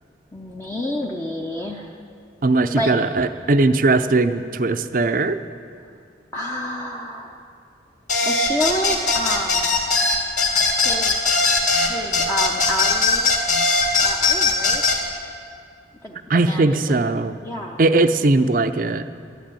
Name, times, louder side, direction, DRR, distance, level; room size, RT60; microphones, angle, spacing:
voice 1, 0.3-2.0 2.8-2.9 6.3-7.4 8.2-9.8 10.8-11.2 11.8-13.3 13.7-14.8 16.0-17.8, equal, 15° left, -1 dB, 0.7 m, -29 dB
voice 2, 2.4-5.4 16.3-17.3 17.8-19.0, right 2 dB, 45° right, 10 dB, 0.5 m, -19 dB
sound 1, 8.1-15.0, left 3 dB, 40° left, 1.9 m, -19 dB
12.0 x 10.0 x 9.0 m, 2.3 s
head